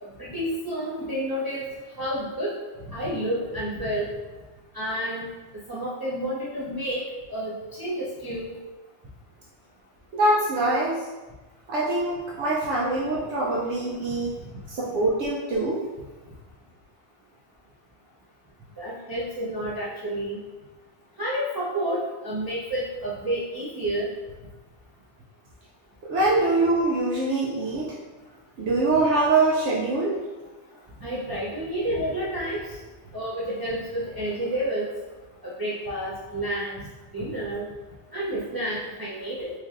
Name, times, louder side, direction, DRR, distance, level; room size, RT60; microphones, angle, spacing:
voice 1, 0.0-1.6 2.0-2.5 2.9-4.1 4.7-5.2 5.7-7.0 7.3-8.6 18.8-20.4 21.2-24.1 31.0-32.6 33.1-34.9 35.4-36.8 37.1-37.7 38.1-39.5, right 1 dB, 25° right, -8 dB, 0.5 m, -30 dB
voice 2, 10.1-11.1 11.7-14.3 14.7-15.8 26.0-27.9 28.6-30.1, right 2 dB, 75° right, -5 dB, 0.9 m, -24 dB
4.2 x 3.2 x 2.4 m, 1.2 s
omnidirectional pair, 1.2 m